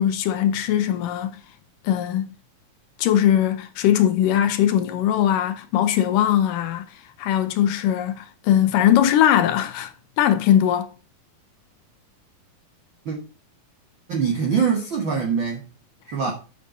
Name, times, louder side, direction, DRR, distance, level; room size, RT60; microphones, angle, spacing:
voice 1, 0.0-1.4 1.8-2.3 3.0-6.9 7.2-9.9 10.2-10.9, left 11 dB, 80° left, 2.3 m, -20 dB
voice 2, 14.1-15.6 16.1-16.3, right 6 dB, 65° right, 1.2 m, -23 dB
6.9 x 6.6 x 4.2 m
omnidirectional pair, 4.0 m